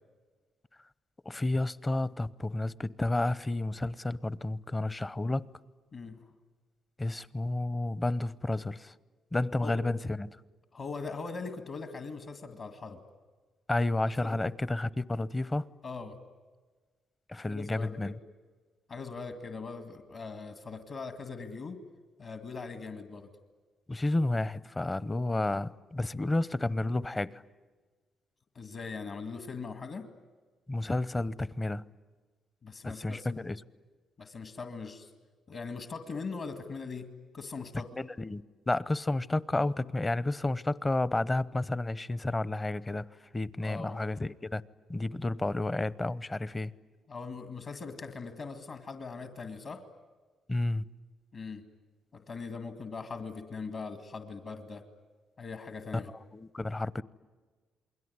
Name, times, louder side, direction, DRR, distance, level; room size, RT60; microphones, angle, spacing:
voice 1, 1.2-5.5 7.0-8.9 9.3-10.4 13.7-15.7 17.3-18.1 23.9-27.4 30.7-31.9 32.8-33.6 38.0-43.1 43.3-44.6 44.9-46.7 50.5-50.8 56.3-57.0, left 2 dB, 20° left, 0.8 m, -31 dB
voice 2, 10.7-13.0 14.2-14.4 15.8-16.2 17.3-18.1 18.9-21.8 22.2-23.3 28.5-30.1 32.6-33.4 34.2-35.1 35.5-37.9 43.6-44.0 47.1-49.8 51.3-51.6 52.1-54.8 55.4-56.1, left 4 dB, 50° left, 2.1 m, -41 dB
28.5 x 21.5 x 9.7 m
cardioid pair, 90°, 0 cm